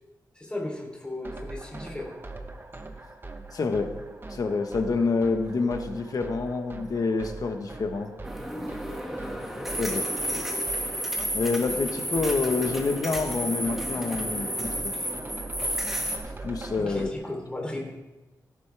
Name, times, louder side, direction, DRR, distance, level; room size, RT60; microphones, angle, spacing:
voice 1, 0.3-2.1 16.7-18.1, left 1 dB, 15° left, -2 dB, 3.3 m, -35 dB
sound 1, 1.2-17.1, right 3 dB, 30° right, 1.1 m, -42 dB
voice 2, 3.5-4.0 4.3-8.1 9.8-10.1 11.3-14.9 16.4-17.1, left 4 dB, 60° left, 6 dB, 1.3 m, -27 dB
sound 2, 8.2-16.2, equal, 5° right, 1.9 m, -31 dB
17.0 x 10.5 x 3.5 m, 1.1 s
wide cardioid pair, 110°, 7 cm